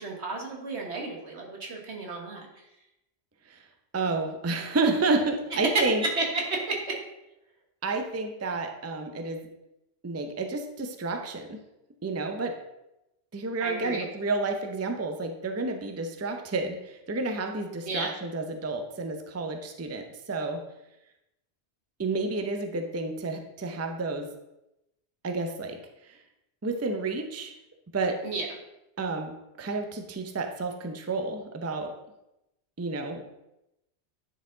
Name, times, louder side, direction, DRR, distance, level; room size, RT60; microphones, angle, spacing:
voice 1, 0.0-2.7 5.5-5.8 6.2-7.0 13.6-14.1 17.8-18.1 28.2-28.6, right 3 dB, 75° right, 0 dB, 1.7 m, -31 dB
voice 2, 3.9-6.0 7.8-9.5 10.0-11.6 12.0-12.6 13.3-20.6 22.0-24.3 25.2-25.8 26.6-27.5 27.9-28.2 29.0-31.9 32.8-33.2, right 3 dB, 20° right, 4 dB, 0.5 m, -30 dB
9.9 x 4.4 x 3.8 m, 0.90 s
omnidirectional pair, 1.1 m